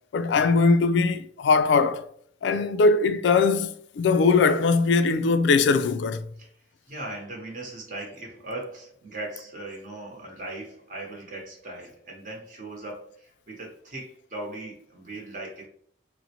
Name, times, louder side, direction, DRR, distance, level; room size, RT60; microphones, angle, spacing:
voice 1, 0.1-2.0 2.4-6.2, left 4 dB, 80° left, 0.3 m, -21 dB
voice 2, 6.9-15.7, right 2 dB, 45° right, 0.8 m, -38 dB
3.9 x 2.0 x 2.8 m
head